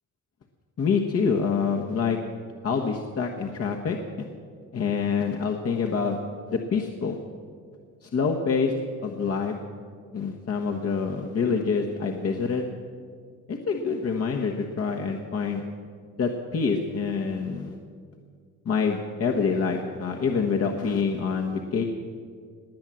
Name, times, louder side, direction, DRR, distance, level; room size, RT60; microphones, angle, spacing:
voice 1, 0.8-2.2 2.6-4.3 4.7-6.2 6.5-7.2 8.0-8.7 9.0-9.5 10.1-12.6 13.5-15.6 16.2-17.8 18.6-21.8, left 5 dB, 50° left, 1 dB, 1.3 m, -26 dB
19.5 x 9.1 x 7.7 m, 2.1 s
cardioid pair, 90°, 30 cm